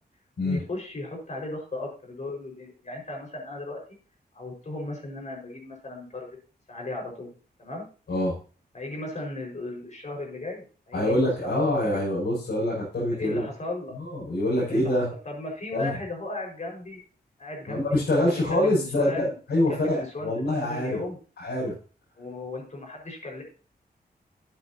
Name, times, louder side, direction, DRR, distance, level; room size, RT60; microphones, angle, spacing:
voice 1, 0.4-3.8 4.3-6.3 6.7-7.3 7.6-7.8 8.7-12.0 13.1-13.9 14.7-17.0 17.4-19.4 19.7-20.3 20.6-21.2 22.2-23.4, left 2 dB, 45° left, 0 dB, 5.3 m, -36 dB
voice 2, 10.9-13.4 13.9-15.1 15.7-16.0 17.7-21.0 21.4-21.7, left 1 dB, 90° left, -7 dB, 6.1 m, -25 dB
13.5 x 8.9 x 2.9 m, 0.38 s
wide cardioid pair, 115°, 17 cm